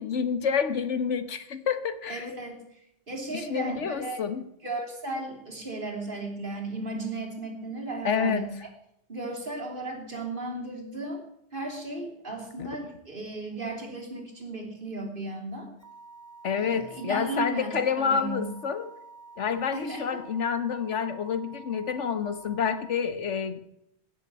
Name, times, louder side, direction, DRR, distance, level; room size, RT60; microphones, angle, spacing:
voice 1, 0.0-2.2 3.3-4.4 8.0-8.4 12.6-12.7 16.4-18.9 19.4-23.6, left 6 dB, 75° left, 11 dB, 1.4 m, -28 dB
voice 2, 2.1-2.8 3.1-4.2 4.6-8.7 9.1-11.2 11.5-15.7 16.5-18.5 19.7-20.2, right 2 dB, 45° right, 1 dB, 3.2 m, -35 dB
sound 1, 15.8-23.0, right 4 dB, 15° right, 2.1 m, -49 dB
17.0 x 7.3 x 8.4 m, 0.77 s
omnidirectional pair, 1.2 m